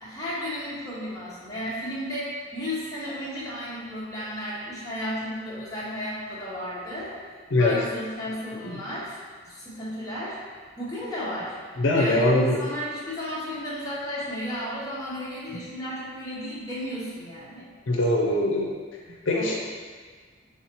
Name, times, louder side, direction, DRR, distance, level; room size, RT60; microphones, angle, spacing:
voice 1, 0.0-7.1 7.6-9.2 9.5-10.4 10.8-11.6 11.9-17.7 19.3-19.5, equal, 20° left, -9 dB, 1.0 m, -33 dB
voice 2, 11.8-12.6 17.9-18.7 19.1-19.5, left 1 dB, 70° left, -3 dB, 0.6 m, -22 dB
4.5 x 3.4 x 3.0 m, 1.5 s
head